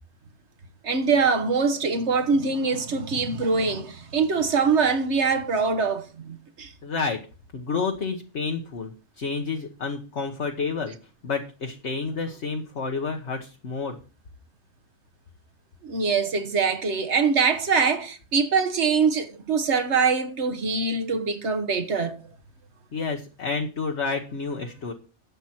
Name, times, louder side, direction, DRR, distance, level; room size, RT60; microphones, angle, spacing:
voice 1, 0.8-6.7 15.8-22.2, right 5 dB, 55° right, 1.6 m, -23 dB
voice 2, 6.8-7.2 7.5-11.0 11.2-14.0 22.9-24.9, left 4 dB, 55° left, 1.4 m, -30 dB
12.0 x 8.0 x 4.5 m
omnidirectional pair, 1.5 m